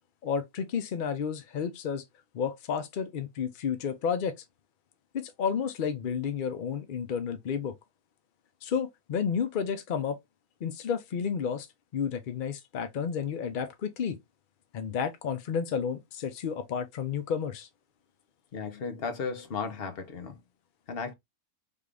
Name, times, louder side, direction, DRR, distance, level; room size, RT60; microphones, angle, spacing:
voice 1, 0.2-2.0 2.3-4.3 5.1-7.7 8.6-10.2 10.6-11.7 11.9-14.2 14.7-17.7, left 7 dB, 75° left, 0.4 m, -31 dB
voice 2, 18.5-20.4 20.9-21.1, left 5 dB, 50° left, 0.9 m, -35 dB
3.6 x 2.4 x 3.2 m
omnidirectional pair, 1.6 m